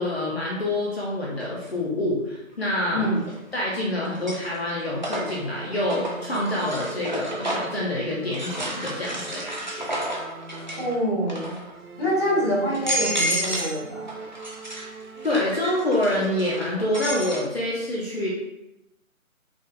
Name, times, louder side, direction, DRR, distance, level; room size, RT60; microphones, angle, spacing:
voice 1, 0.0-3.1 3.5-10.0 15.2-18.3, left 1 dB, 45° left, -5 dB, 1.1 m, -27 dB
sound 1, 1.4-1.5 3.2-3.7 4.0-7.8 8.3-10.9 11.2-11.7 12.3-12.4 12.7-13.8 14.1-17.4, equal, 35° right, 0.6 m, -31 dB
sound 2, 4.9-11.3 11.7-16.7, right 4 dB, 85° right, 0.8 m, -42 dB
voice 2, 10.6-11.5 12.0-14.1, equal, 20° left, -11 dB, 1.4 m, -25 dB
5.4 x 3.4 x 2.6 m, 0.91 s
figure-of-eight pair, 160°, 42 cm